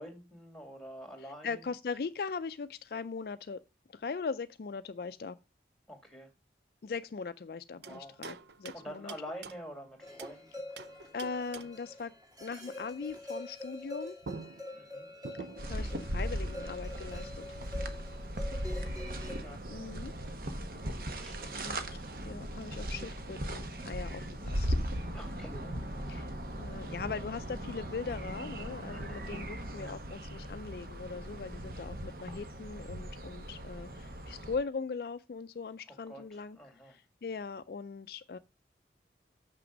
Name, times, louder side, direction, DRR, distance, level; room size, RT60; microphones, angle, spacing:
voice 1, 0.0-1.6 5.9-6.3 7.8-8.2 8.7-10.7 14.7-15.1 18.8-19.2 19.4-19.6 21.0-22.0 25.1-26.2 26.7-26.8 28.9-29.2 35.9-37.0, equal, ahead, 2.2 m, -48 dB
voice 2, 1.4-3.6 3.9-5.4 6.8-9.1 11.1-12.1 12.4-14.2 15.4-17.4 19.7-20.1 21.5-24.8 26.1-36.6 36.9-38.4, left 5 dB, 55° left, 0.4 m, -40 dB
sound 1, 7.8-10.4 10.8-11.9 13.9-14.0 14.2-15.9, right 4 dB, 75° right, 0.6 m, -47 dB
sound 2, 10.0-19.4, left 2 dB, 20° right, 2.3 m, -46 dB
sound 3, 15.6-34.6, equal, 55° right, 1.0 m, -38 dB
6.8 x 6.0 x 5.0 m
head